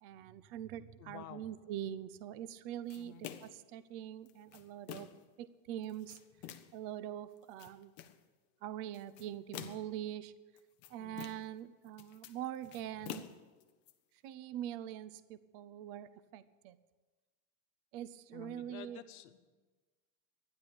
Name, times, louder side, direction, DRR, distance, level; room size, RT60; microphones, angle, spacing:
voice 1, 0.0-3.2 3.4-5.1 5.4-6.2 6.7-7.9 8.6-10.3 10.9-13.2 14.2-16.8 17.9-19.0, right 11 dB, 40° right, 15 dB, 0.6 m, -43 dB
voice 2, 1.0-1.4 3.0-3.2 11.0-11.2 18.3-19.4, left 12 dB, 80° left, 9 dB, 1.3 m, -51 dB
sound 1, 2.9-3.7 4.3-5.3 5.8-6.8 7.4-8.2 8.9-10.0 10.6-11.6 11.9-13.9, left 10 dB, 25° left, 0.5 m, -48 dB
12.5 x 10.5 x 8.6 m, 1.3 s
supercardioid pair, 170°, 44 cm